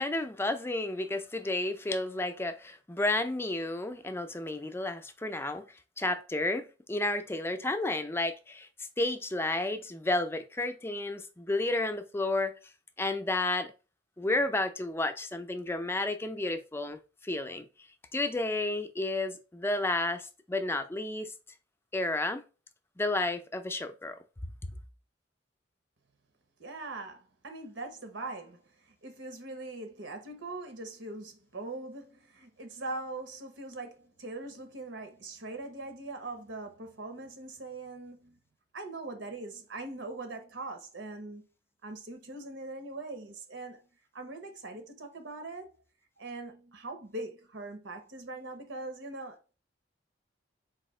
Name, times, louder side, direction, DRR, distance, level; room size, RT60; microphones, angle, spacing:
voice 1, 0.0-5.6 6.0-8.7 9.0-12.5 13.0-13.7 14.2-17.0 17.2-17.7 18.1-21.3 21.9-22.4 23.0-24.2, left 2 dB, 15° left, 0.4 m, -31 dB
voice 2, 26.6-28.6 29.0-38.4 38.7-41.5 41.8-43.8 44.1-45.7 46.2-49.5, right 2 dB, 85° right, 1.0 m, -41 dB
4.1 x 2.8 x 4.2 m
head